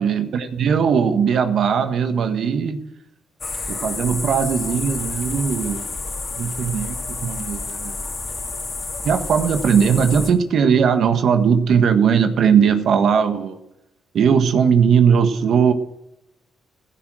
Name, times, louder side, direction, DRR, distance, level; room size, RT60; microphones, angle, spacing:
voice 1, 0.0-2.8 3.7-5.8 6.3-8.0 9.0-13.6 14.1-15.7, right 7 dB, 65° right, 7 dB, 1.5 m, -18 dB
sound 1, 3.4-10.3, left 3 dB, 35° left, 3.0 m, -29 dB
15.0 x 13.0 x 6.3 m, 0.83 s
cardioid pair, 90°, 0 cm